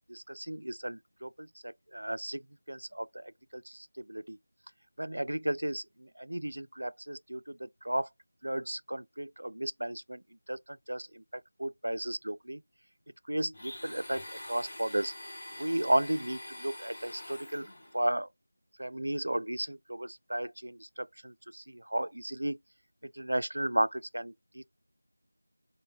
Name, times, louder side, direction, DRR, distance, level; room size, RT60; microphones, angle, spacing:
voice 1, 0.1-2.4 2.7-4.4 5.0-8.1 8.4-10.2 10.5-11.2 11.6-12.6 13.3-14.2 14.5-15.1 15.6-17.7 17.9-18.3 18.8-22.6 23.1-24.6, right 1 dB, 85° right, 0.4 m, -34 dB
Domestic sounds home sounds, 13.5-18.0, left 1 dB, 20° left, 0.6 m, -45 dB
2.3 x 2.1 x 3.1 m
figure-of-eight pair, 180°, 0 cm